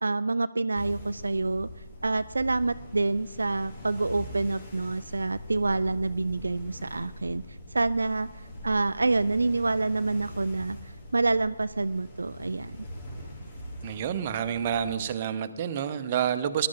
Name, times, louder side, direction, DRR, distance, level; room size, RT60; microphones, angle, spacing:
voice 1, 0.0-1.7 2.0-8.3 8.6-12.8, right 3 dB, 70° right, 12 dB, 0.3 m, -27 dB
sound 1, 0.7-15.0, equal, 35° left, 3.8 m, -43 dB
voice 2, 13.8-16.7, right 9 dB, 30° right, 9 dB, 0.8 m, -28 dB
19.0 x 11.5 x 3.9 m, 1.2 s
figure-of-eight pair, 145°, 0 cm